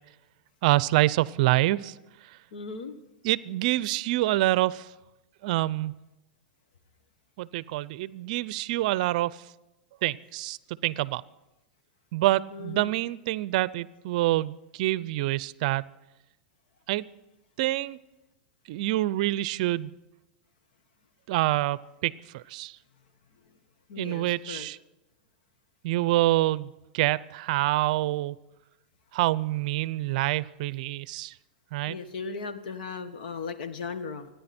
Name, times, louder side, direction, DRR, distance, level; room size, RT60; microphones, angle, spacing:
voice 1, 0.6-2.0 3.2-4.9 5.4-6.0 7.4-9.4 10.0-10.6 10.8-11.2 12.1-15.8 16.9-17.0 17.6-18.0 18.7-19.9 21.3-22.8 24.0-24.8 25.8-28.4 29.1-31.3 31.7-32.0, right 17 dB, 60° right, 19 dB, 0.5 m, -26 dB
voice 2, 2.5-3.0 12.5-12.9 23.9-24.7 31.9-34.3, left 5 dB, 75° left, 9 dB, 1.6 m, -37 dB
29.5 x 10.5 x 4.4 m, 0.98 s
hypercardioid pair, 125°, 5 cm